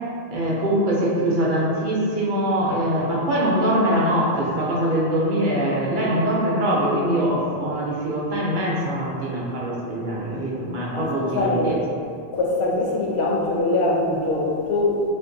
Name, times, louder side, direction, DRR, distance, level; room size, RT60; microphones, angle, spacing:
voice 1, 0.3-11.8, right 1 dB, 55° right, -5 dB, 0.7 m, -23 dB
voice 2, 11.3-11.8 12.3-15.0, left 2 dB, 80° left, -2 dB, 0.8 m, -22 dB
3.0 x 2.5 x 2.6 m, 2.4 s
omnidirectional pair, 1.1 m